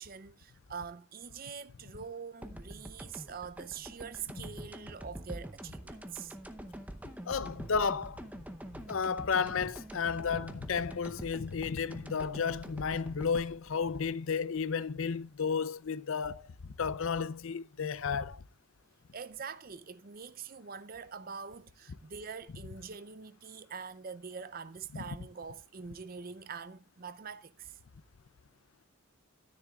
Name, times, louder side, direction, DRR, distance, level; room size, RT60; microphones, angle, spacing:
voice 1, 0.0-6.4 19.1-27.8, right 6 dB, 40° right, 0.5 m, -44 dB
sound 1, 2.4-15.2, right 1 dB, 5° right, 0.7 m, -46 dB
voice 2, 7.3-8.2 8.9-18.4 24.9-25.0, left 6 dB, 70° left, 0.6 m, -33 dB
13.5 x 9.9 x 2.4 m
head